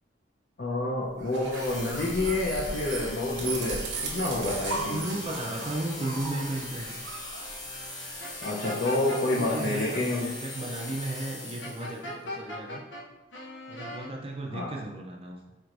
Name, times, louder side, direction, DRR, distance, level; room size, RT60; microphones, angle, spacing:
voice 1, 0.6-5.0 8.4-10.3 14.5-14.7, left 2 dB, 55° left, -5 dB, 0.7 m, -28 dB
sound 1, 1.2-8.1, right 3 dB, 75° right, 0.9 m, -37 dB
sound 2, 1.5-12.1, left 2 dB, 20° left, 0.7 m, -40 dB
voice 2, 4.9-7.0 9.2-12.8 13.7-15.4, right 2 dB, 30° right, 0 dB, 0.4 m, -35 dB
sound 3, 8.2-9.6 11.6-13.0 13.3-14.1, left 1 dB, 90° left, 1.0 m, -38 dB
4.5 x 4.3 x 2.6 m, 1.1 s
head